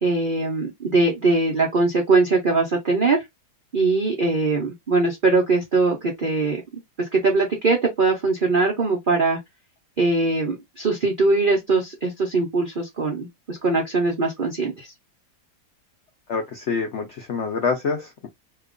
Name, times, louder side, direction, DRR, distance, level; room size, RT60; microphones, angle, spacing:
voice 1, 0.0-3.2 3.7-6.6 7.1-9.4 10.0-14.9, right 3 dB, 70° right, 0.4 m, -21 dB
voice 2, 16.3-18.3, left 5 dB, 85° left, 0.6 m, -26 dB
2.9 x 2.3 x 3.6 m
omnidirectional pair, 2.0 m